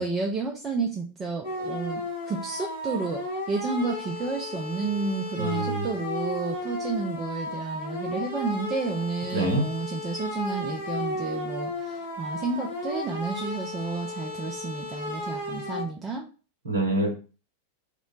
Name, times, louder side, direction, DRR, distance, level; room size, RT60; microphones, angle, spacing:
voice 1, 0.0-16.3, right 4 dB, 20° right, 1 dB, 0.4 m, -31 dB
sound 1, 1.4-15.8, left 1 dB, 70° left, 1.5 m, -34 dB
voice 2, 5.4-5.9 9.3-9.6 16.6-17.1, right 1 dB, 70° right, 3 dB, 0.8 m, -25 dB
2.9 x 2.1 x 3.7 m, 0.35 s
figure-of-eight pair, 90°, 0 cm